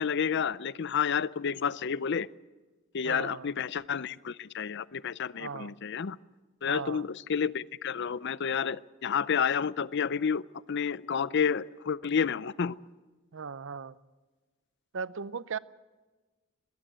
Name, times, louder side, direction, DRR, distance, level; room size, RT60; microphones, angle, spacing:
voice 1, 0.0-2.3 2.9-6.2 6.6-10.4 10.7-12.8, left 7 dB, 60° left, 18 dB, 0.5 m, -30 dB
voice 2, 3.0-3.5 5.4-5.7 6.7-7.0 13.3-14.0 14.9-15.6, right 5 dB, 70° right, 17 dB, 0.6 m, -37 dB
21.0 x 16.5 x 8.0 m, 1.3 s
head